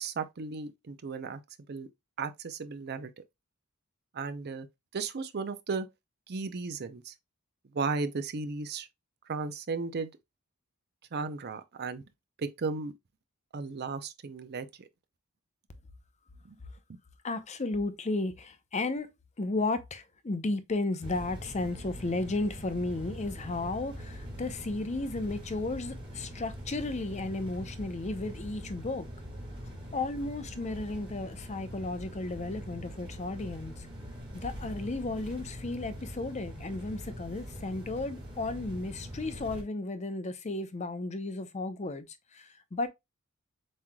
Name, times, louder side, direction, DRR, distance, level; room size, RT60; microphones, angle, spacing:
voice 1, 0.0-1.4 1.7-1.9 2.2-3.1 4.1-4.7 4.9-5.9 6.3-7.1 7.7-8.9 9.3-10.1 11.1-12.0 12.4-12.9 13.5-14.7 16.4-16.6, right 4 dB, 50° right, 0.5 m, -35 dB
voice 2, 17.2-19.1 19.4-29.1 29.9-33.9 34.3-42.9, left 2 dB, 30° left, 0.6 m, -34 dB
sound 1, 21.0-39.6, equal, 25° right, 1.9 m, -43 dB
7.4 x 3.1 x 2.2 m
head